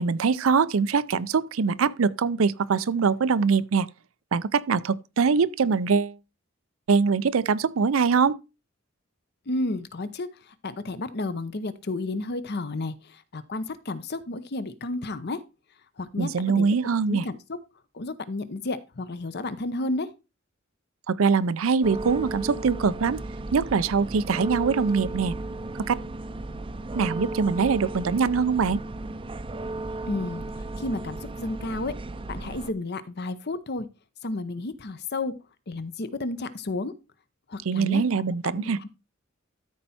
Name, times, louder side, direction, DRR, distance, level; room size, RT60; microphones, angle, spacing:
voice 1, 0.0-3.9 4.3-6.2 6.9-8.4 16.2-17.2 21.1-23.2 23.5-25.3 25.9-26.0 26.9-28.8 37.7-38.8, right 5 dB, 90° right, 0.5 m, -23 dB
voice 2, 9.5-15.4 16.0-16.7 17.1-17.6 17.9-20.1 30.1-30.4 30.8-31.9 32.3-33.9 34.2-35.3 35.7-36.9 37.5-38.0 38.8-38.9, left 2 dB, 55° left, 0.8 m, -32 dB
sound 1, 21.8-32.7, right 2 dB, 25° right, 0.5 m, -35 dB
13.0 x 4.4 x 4.2 m
head